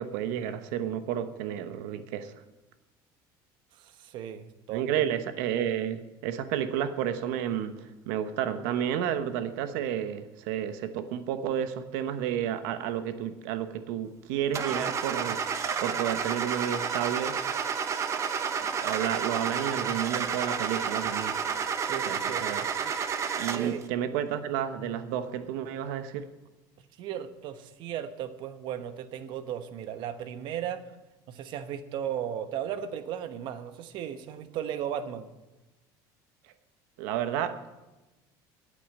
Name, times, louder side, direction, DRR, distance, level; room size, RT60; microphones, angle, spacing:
voice 1, 0.0-2.3 4.7-15.4 15.8-17.4 18.8-21.3 22.1-22.6 23.4-26.3 37.0-37.5, right 10 dB, 90° right, 10 dB, 1.0 m, -31 dB
voice 2, 3.8-5.1 21.8-22.4 23.6-23.8 27.0-30.8 31.3-35.3, right 9 dB, 55° right, 10 dB, 1.0 m, -36 dB
Car / Engine starting, 14.5-23.8, right 6 dB, 30° right, 0.8 m, -30 dB
8.8 x 8.5 x 9.0 m, 1.1 s
cardioid pair, 145°, 9 cm